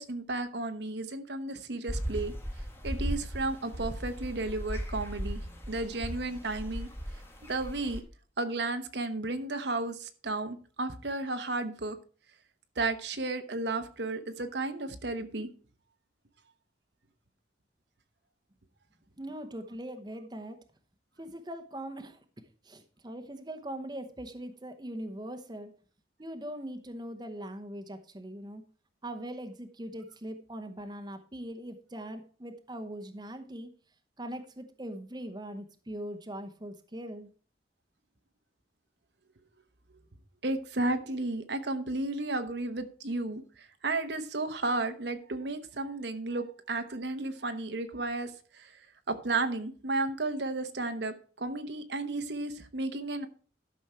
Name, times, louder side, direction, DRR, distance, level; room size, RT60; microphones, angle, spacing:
voice 1, 0.0-2.3 2.8-5.4 5.7-6.9 7.5-8.0 8.4-12.0 12.8-15.5 40.4-48.7 49.1-53.3, right 2 dB, 70° right, 8 dB, 1.0 m, -33 dB
sound 1, 1.9-8.0, equal, 15° left, 1.4 m, -37 dB
voice 2, 19.2-20.6 21.2-22.2 22.6-25.7 26.2-28.6 29.0-33.7 34.2-37.3, right 1 dB, 25° right, 6 dB, 0.9 m, -41 dB
12.0 x 6.2 x 4.4 m, 0.39 s
head